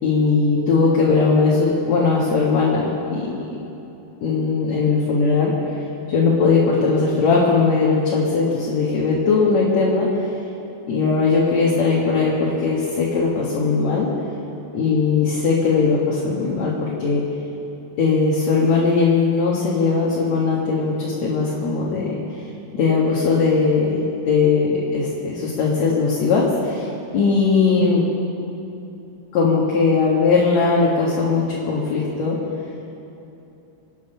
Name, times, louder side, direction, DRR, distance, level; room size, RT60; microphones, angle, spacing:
voice 1, 0.0-3.4 4.2-10.3 10.9-14.1 14.7-17.2 18.0-22.2 22.7-24.0 24.3-28.0 29.3-32.4, left 4 dB, 65° left, -4 dB, 2.8 m, -19 dB
25.5 x 9.6 x 5.6 m, 2.9 s
omnidirectional pair, 3.5 m